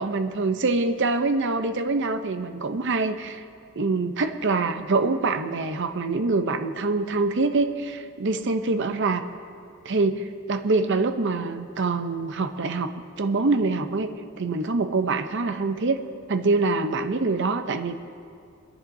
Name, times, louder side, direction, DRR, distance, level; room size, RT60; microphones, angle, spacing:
voice 1, 0.0-3.4 3.8-9.2 9.8-12.9 13.2-14.1 14.4-16.0 16.3-17.9, right 3 dB, 55° right, 8 dB, 0.7 m, -25 dB
27.5 x 10.0 x 2.7 m, 2.3 s
head